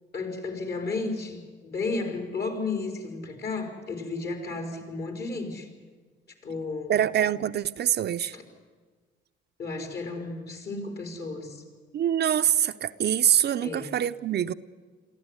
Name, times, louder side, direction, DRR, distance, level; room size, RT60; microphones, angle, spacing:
voice 1, 0.1-5.7 6.4-7.0 8.3-8.4 9.6-11.6 13.6-13.9, left 3 dB, 55° left, 4.4 m, -33 dB
voice 2, 6.9-8.4 11.9-14.5, right 10 dB, 55° right, 0.6 m, -24 dB
22.5 x 14.5 x 9.7 m
cardioid pair, 90°, 20 cm